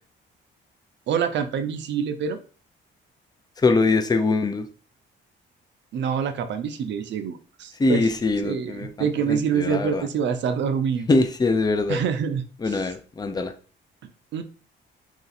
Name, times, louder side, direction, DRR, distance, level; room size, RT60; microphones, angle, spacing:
voice 1, 1.1-2.4 5.9-8.1 8.4-11.1 11.9-12.8 14.0-14.4, right 7 dB, 65° right, 9 dB, 0.5 m, -26 dB
voice 2, 3.6-4.7 7.8-10.1 11.1-12.0 12.6-13.5, left 3 dB, 20° left, 7 dB, 0.5 m, -23 dB
3.1 x 2.5 x 4.1 m, 0.39 s
cardioid pair, 90°, 20 cm